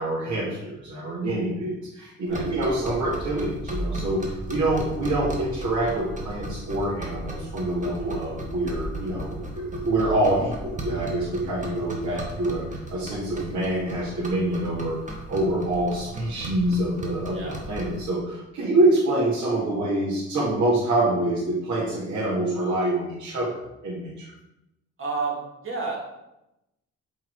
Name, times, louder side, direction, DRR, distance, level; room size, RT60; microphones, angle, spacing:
voice 1, 0.0-15.0 15.3-17.4 17.7-24.1, right 1 dB, 70° right, -9 dB, 2.5 m, -26 dB
sound 1, 2.3-18.0, right 1 dB, 25° right, 1.8 m, -36 dB
voice 2, 25.0-26.0, right 4 dB, 45° right, -2 dB, 2.7 m, -31 dB
7.9 x 4.6 x 4.9 m, 0.91 s
cardioid pair, 90°, 30 cm